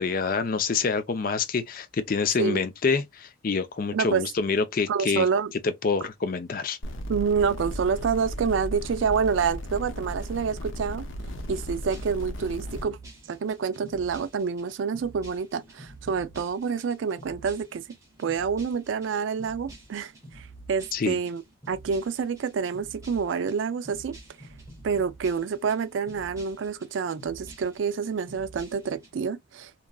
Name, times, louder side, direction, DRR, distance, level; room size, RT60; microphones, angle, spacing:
voice 1, 0.0-5.3 5.8-6.8 20.9-21.2, left 5 dB, 45° left, 0.4 m, -26 dB
voice 2, 3.9-4.2 4.9-5.5 7.1-11.1 11.5-13.0 13.3-17.8 18.2-21.4 21.7-24.2 24.8-29.9, right 6 dB, 75° right, 0.4 m, -28 dB
sound 1, 6.8-12.8, equal, 90° left, 0.6 m, -35 dB
sound 2, 11.3-29.1, right 2 dB, 15° right, 1.1 m, -49 dB
2.9 x 2.4 x 2.2 m
head